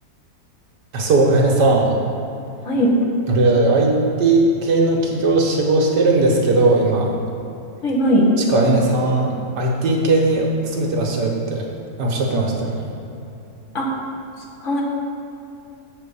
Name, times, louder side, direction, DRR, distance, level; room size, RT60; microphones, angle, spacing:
voice 1, 0.9-2.0 3.3-7.1 8.5-11.6 12.0-12.9, right 2 dB, 85° right, -1 dB, 1.7 m, -18 dB
voice 2, 2.6-3.0 7.8-8.3 13.7-13.9 14.6-14.8, equal, 50° left, -3 dB, 1.3 m, -18 dB
7.3 x 4.3 x 6.9 m, 2.8 s
omnidirectional pair, 1.8 m